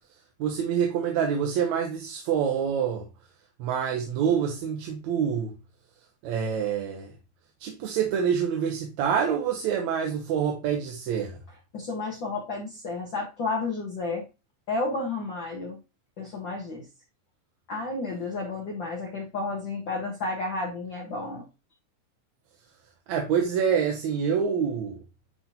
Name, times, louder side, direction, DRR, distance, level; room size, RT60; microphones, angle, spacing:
voice 1, 0.4-3.1 3.6-5.6 6.2-7.1 7.6-11.4 23.1-25.0, right 7 dB, 70° right, 2.2 m, -26 dB
voice 2, 11.7-14.2 14.7-15.8 16.2-16.9 17.7-21.4, left 3 dB, 50° left, 1.6 m, -31 dB
9.8 x 3.7 x 2.9 m
omnidirectional pair, 3.5 m